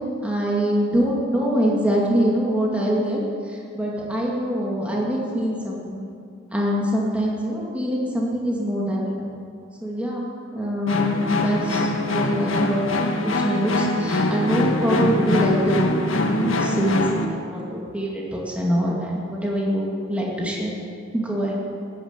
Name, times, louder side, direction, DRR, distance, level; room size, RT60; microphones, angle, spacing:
voice 1, 0.2-3.2 3.5-6.0 6.5-9.2 9.8-10.3 10.5-12.9 13.2-15.9 16.2-20.7 21.1-21.5, equal, 5° right, -3 dB, 2.4 m, -24 dB
sound 1, 10.9-17.3, left 1 dB, 90° left, 1.6 m, -23 dB
14.5 x 10.0 x 9.0 m, 2.4 s
head